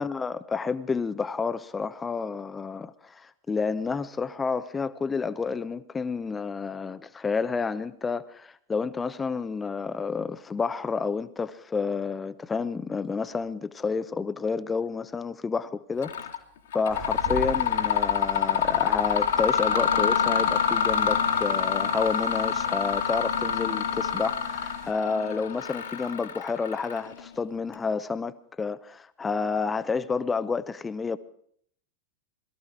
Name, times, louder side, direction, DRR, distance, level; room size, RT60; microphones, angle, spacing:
voice 1, 0.0-16.2 16.7-31.2, left 5 dB, 15° left, 0.7 m, -30 dB
Mechanisms, 16.0-16.4 16.7-27.3, left 7 dB, 60° left, 1.9 m, -26 dB
sound 1, 16.9-24.9, right 5 dB, 50° right, 2.3 m, -43 dB
22.0 x 14.0 x 4.8 m
figure-of-eight pair, 90°, 0 cm